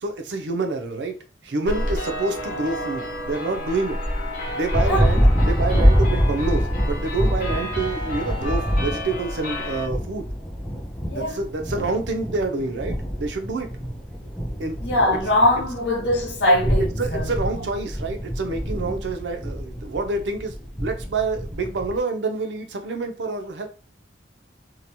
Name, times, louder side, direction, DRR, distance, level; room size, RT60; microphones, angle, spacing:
voice 1, 0.0-1.2 1.4-4.0 4.5-10.3 11.1-13.8 14.6-14.8 15.1-15.2 17.0-23.7, right 3 dB, 70° right, 0.5 m, -27 dB
sound 1, 1.7-9.9, left 1 dB, 50° left, 0.7 m, -30 dB
Thunder, 4.5-22.0, equal, 5° left, 0.4 m, -25 dB
voice 2, 14.8-17.3 17.5-17.6, left 1 dB, 80° left, 1.0 m, -21 dB
2.8 x 2.1 x 2.7 m
head